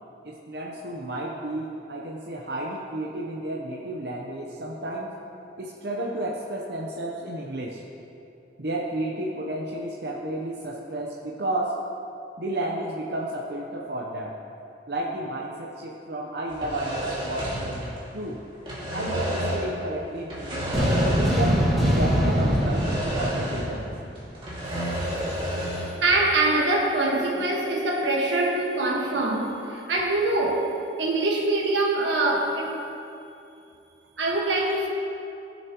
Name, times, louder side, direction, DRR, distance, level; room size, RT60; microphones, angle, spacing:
voice 1, 0.2-5.2 5.6-7.8 8.6-11.8 12.4-14.4 14.9-18.4 18.9-21.6 21.9-23.9, right 1 dB, 60° right, -2 dB, 0.8 m, -32 dB
sound 1, 16.5-18.3 18.5-19.8 20.3-21.7 21.9-22.0 22.6-23.9 24.2-26.0, equal, 30° right, 2.2 m, -30 dB
sound 2, 20.7-24.2, equal, ahead, 1.8 m, -23 dB
voice 2, 25.6-32.8 34.2-34.9, right 2 dB, 90° right, 0 dB, 1.5 m, -24 dB
17.5 x 7.1 x 3.0 m, 2.7 s
head